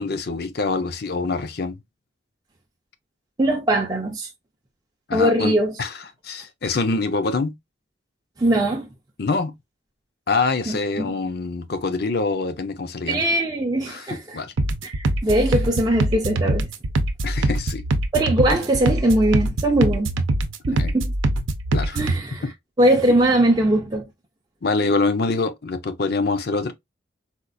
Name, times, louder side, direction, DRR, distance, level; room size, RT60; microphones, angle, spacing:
voice 1, 0.0-1.8 5.1-5.5 5.8-5.9 6.2-7.5 9.2-9.5 10.3-13.2 13.9-14.5 17.2-17.8 20.7-21.0 21.7-22.0 24.6-26.7, left 3 dB, 50° left, 0.5 m, -25 dB
voice 2, 3.4-4.3 5.1-5.7 8.4-8.9 10.7-11.1 13.1-14.4 14.8-16.7 18.1-20.1 20.7-21.1 21.9-22.4 22.8-24.1, right 1 dB, 20° right, 0.5 m, -21 dB
sound 1, 14.6-22.2, right 2 dB, 80° right, 0.6 m, -23 dB
4.3 x 2.4 x 2.4 m
head